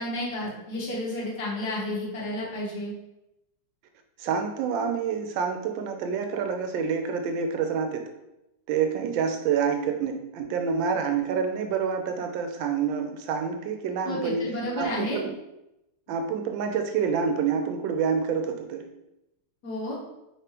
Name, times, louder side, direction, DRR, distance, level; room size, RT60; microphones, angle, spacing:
voice 1, 0.0-2.9 14.0-15.2 19.6-20.0, left 1 dB, 60° left, -5 dB, 1.5 m, -31 dB
voice 2, 4.2-8.1 8.7-14.5 14.8-15.3 16.1-18.9, right 6 dB, 90° right, 5 dB, 1.3 m, -27 dB
3.6 x 3.4 x 2.8 m, 0.90 s
omnidirectional pair, 2.0 m